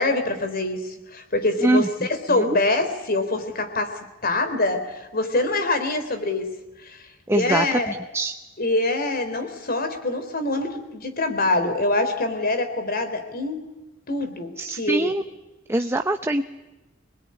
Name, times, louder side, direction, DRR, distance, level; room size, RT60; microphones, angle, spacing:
voice 1, 0.0-3.9 4.2-6.5 6.8-7.9 8.6-13.6 14.1-15.1, left 2 dB, 50° left, 9 dB, 3.6 m, -25 dB
voice 2, 7.3-8.3 14.6-15.2 15.7-16.4, right 1 dB, 15° right, 6 dB, 0.8 m, -23 dB
25.0 x 20.5 x 9.7 m, 1.1 s
head